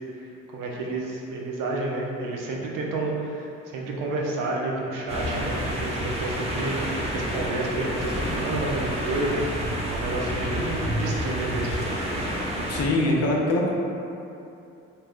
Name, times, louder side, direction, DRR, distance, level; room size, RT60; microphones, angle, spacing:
voice 1, 0.2-11.9, right 2 dB, 70° right, -2 dB, 0.6 m, -30 dB
sound 1, 5.1-12.9, equal, 20° right, 0.6 m, -29 dB
voice 2, 12.7-13.7, left 1 dB, 50° left, -1 dB, 0.6 m, -23 dB
2.4 x 2.1 x 3.4 m, 2.7 s
supercardioid pair, 55°, 33 cm